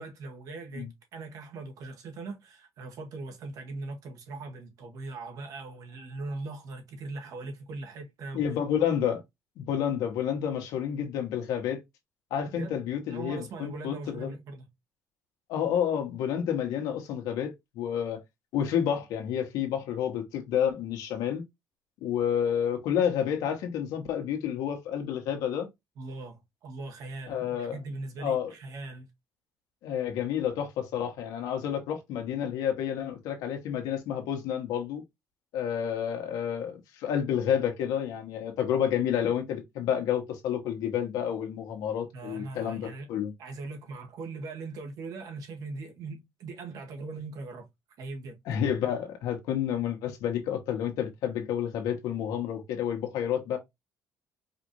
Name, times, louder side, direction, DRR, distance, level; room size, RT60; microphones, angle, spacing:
voice 1, 0.0-8.4 12.5-12.8 13.1-14.7 26.0-29.1 42.1-43.1 43.4-47.7 48.0-48.4, right 3 dB, 70° right, 1.4 m, -40 dB
voice 2, 8.3-9.2 9.6-11.8 12.3-14.4 15.5-18.2 18.5-21.4 22.0-25.7 27.3-27.8 28.2-28.5 29.8-35.0 35.5-43.3 48.4-53.6, left 9 dB, 85° left, 1.3 m, -30 dB
4.9 x 2.6 x 3.0 m
cardioid pair, 105°, 6 cm